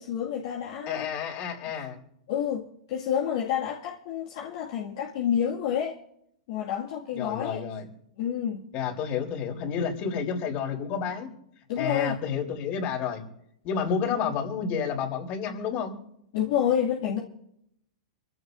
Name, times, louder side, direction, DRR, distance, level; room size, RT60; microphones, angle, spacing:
voice 1, 0.0-1.1 2.3-6.0 6.5-7.6 8.2-8.6 11.7-12.2 16.3-17.2, left 9 dB, 60° left, 2.3 m, -29 dB
voice 2, 0.9-2.0 7.1-7.8 8.7-11.3 11.8-13.2 13.6-16.0, left 6 dB, 45° left, 3.9 m, -30 dB
26.0 x 15.5 x 2.7 m
hypercardioid pair, 110°, 3 cm